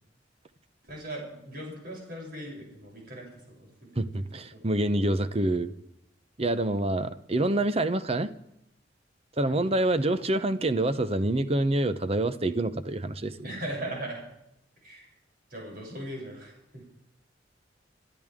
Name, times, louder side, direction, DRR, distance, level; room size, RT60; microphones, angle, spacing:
voice 1, 0.9-4.4 6.5-7.0 9.4-9.8 13.4-14.2 14.8-15.1 15.5-16.8, right 1 dB, 55° right, -2 dB, 7.8 m, -39 dB
voice 2, 4.0-5.7 6.4-8.3 9.4-13.4, right 1 dB, 35° right, 12 dB, 0.8 m, -26 dB
28.0 x 12.5 x 3.7 m, 0.81 s
head